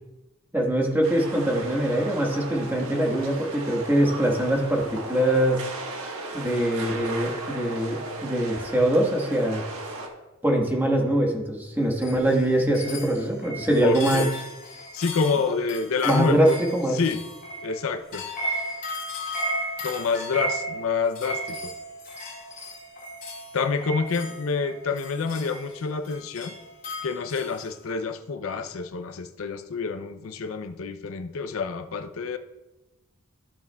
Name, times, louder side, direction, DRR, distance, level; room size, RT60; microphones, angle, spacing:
voice 1, 0.5-5.6 6.3-9.6 10.4-14.2 16.0-17.0, right 1 dB, 10° right, -1 dB, 1.4 m, -23 dB
sound 1, 1.0-10.1, right 2 dB, 90° right, 1.4 m, -36 dB
sound 2, 12.0-27.6, equal, 40° left, 2.5 m, -35 dB
voice 2, 13.8-14.3 14.9-16.6 16.9-17.2 17.6-18.2 19.8-21.7 23.5-26.5 27.0-32.4, left 4 dB, 75° left, 9 dB, 0.5 m, -27 dB
15.0 x 7.1 x 2.3 m, 1.1 s
head